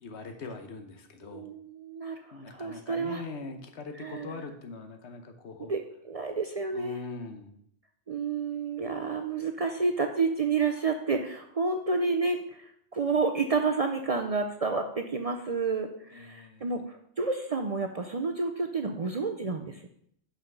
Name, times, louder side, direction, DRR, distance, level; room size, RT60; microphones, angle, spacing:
voice 1, 0.0-1.5 2.3-5.7 6.7-7.5 16.1-16.7, left 4 dB, 70° left, 6 dB, 1.2 m, -42 dB
voice 2, 1.3-3.2 4.0-4.4 5.6-7.0 8.1-19.9, right 4 dB, 50° right, 5 dB, 0.4 m, -30 dB
5.8 x 5.6 x 5.4 m, 0.69 s
omnidirectional pair, 1.2 m